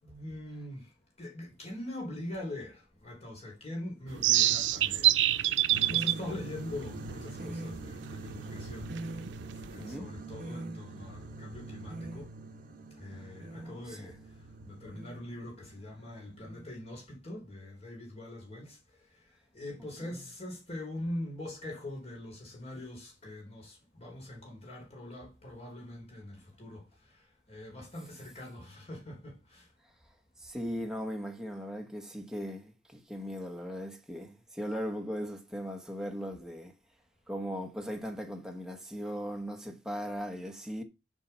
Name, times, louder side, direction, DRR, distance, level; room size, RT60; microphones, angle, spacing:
voice 1, 0.0-12.3 13.0-29.7, left 1 dB, 35° left, 4.0 m, -43 dB
sound 1, 4.1-10.0, right 14 dB, 90° right, 0.5 m, -28 dB
sound 2, 5.7-16.7, right 2 dB, 50° right, 1.4 m, -43 dB
voice 2, 9.8-10.1 13.6-14.1 20.0-20.2 30.4-36.7 37.3-40.8, equal, 5° right, 1.2 m, -38 dB
7.3 x 5.4 x 5.6 m
head